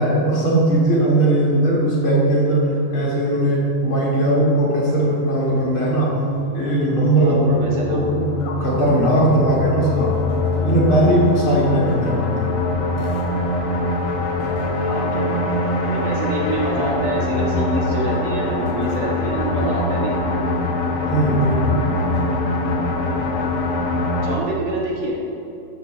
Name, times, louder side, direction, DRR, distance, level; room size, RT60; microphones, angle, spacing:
voice 1, 0.0-6.1 6.5-8.3 8.6-10.1 10.6-12.5 21.1-21.8, right 1 dB, 40° left, -5 dB, 3.2 m, -18 dB
sound 1, 5.4-24.4, left 2 dB, 75° left, 3.0 m, -23 dB
voice 2, 7.2-8.2 14.7-20.6 24.1-25.2, right 2 dB, 65° right, -3 dB, 3.0 m, -27 dB
14.0 x 12.5 x 4.1 m, 2.9 s
omnidirectional pair, 4.2 m